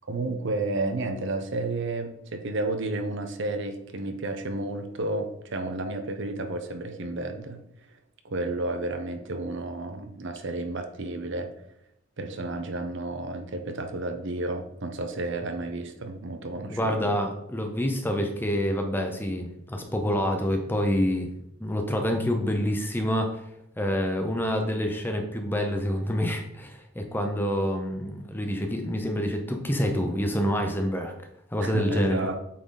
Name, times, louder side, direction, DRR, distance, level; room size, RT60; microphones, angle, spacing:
voice 1, 0.1-7.6 8.2-11.5 12.2-17.2 31.6-32.4, right 2 dB, 55° right, 7 dB, 0.7 m, -31 dB
voice 2, 16.7-21.3 21.6-23.4 23.8-31.1 31.5-32.4, equal, 10° left, 3 dB, 0.7 m, -27 dB
8.4 x 3.9 x 3.9 m, 0.77 s
head